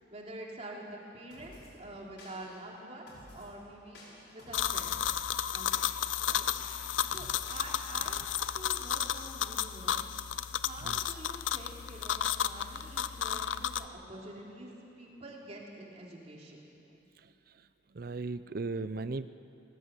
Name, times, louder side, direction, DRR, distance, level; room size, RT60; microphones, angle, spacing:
voice 1, 0.1-4.0 4.3-5.0 5.5-5.9 6.2-6.5 7.1-10.0 10.6-14.7 15.0-16.7, right 1 dB, 35° right, -2 dB, 3.1 m, -47 dB
sound 1, 1.3-1.7 2.2-2.6 3.1-3.5 3.9-5.2 5.7-8.4, left 1 dB, 65° left, 6.4 m, -53 dB
sound 2, 4.5-13.9, left 9 dB, 90° left, 0.5 m, -33 dB
voice 2, 17.9-19.3, right 3 dB, 50° right, 14 dB, 0.5 m, -36 dB
19.0 x 18.0 x 8.2 m, 2.8 s
head